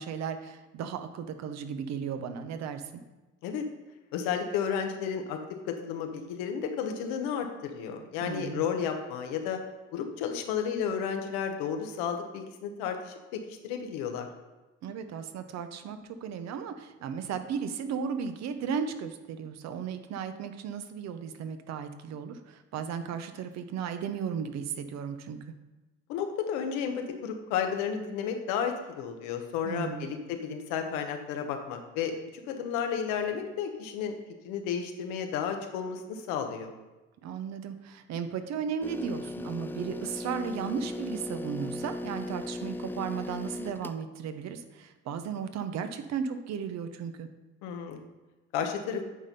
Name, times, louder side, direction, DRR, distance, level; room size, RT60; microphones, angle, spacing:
voice 1, 0.0-3.0 8.2-8.6 14.8-25.4 29.6-30.1 37.2-47.3, right 7 dB, 65° right, 9 dB, 0.9 m, -35 dB
voice 2, 4.1-5.4 5.7-9.6 9.9-14.3 26.1-32.1 32.5-34.2 34.4-36.7 47.6-48.0 48.5-49.0, left 7 dB, 85° left, 5 dB, 1.1 m, -32 dB
sound 1, 38.8-44.0, left 1 dB, 5° left, 0.3 m, -37 dB
8.7 x 4.3 x 5.3 m, 1.1 s
supercardioid pair, 75°, 29 cm